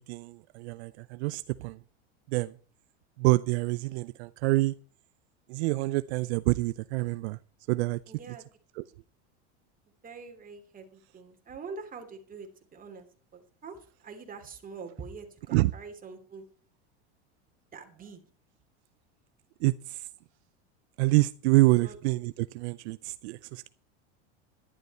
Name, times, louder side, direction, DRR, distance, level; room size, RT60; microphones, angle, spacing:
voice 1, 0.0-1.8 2.3-2.5 3.2-4.7 5.5-7.4 7.7-8.0 8.8-8.9 15.5-15.7 19.6-20.0 21.0-23.7, right 20 dB, 70° right, 0.6 m, -27 dB
voice 2, 8.0-8.5 10.0-13.1 13.3-16.4 17.7-18.2 21.8-22.0, right 5 dB, 25° right, 3.1 m, -44 dB
11.5 x 11.0 x 4.3 m
supercardioid pair, 115°, 34 cm